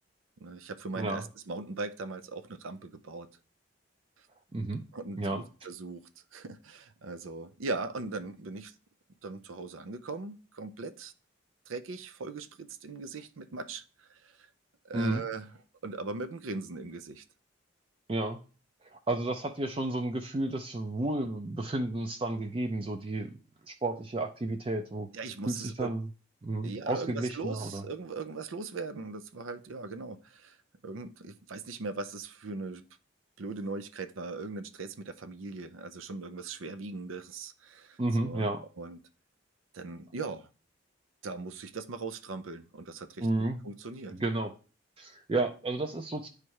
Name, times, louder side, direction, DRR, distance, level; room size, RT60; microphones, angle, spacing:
voice 1, 0.4-3.3 4.9-6.0 6.3-8.7 9.2-11.1 11.7-14.5 14.8-15.5 15.8-17.2 25.1-25.9 26.6-30.6 30.8-32.8 33.4-38.5 38.8-39.0 39.7-40.5 41.2-43.3 43.6-44.1, right 3 dB, 85° right, 0.6 m, -39 dB
voice 2, 0.9-1.3 4.5-4.8 5.2-5.4 14.9-15.2 18.1-18.4 18.8-23.4 23.7-25.1 25.5-26.1 26.4-27.8 38.0-38.6 43.2-43.6 44.1-44.5 45.0-46.3, right 2 dB, 25° right, 0.4 m, -32 dB
9.6 x 3.3 x 4.6 m
head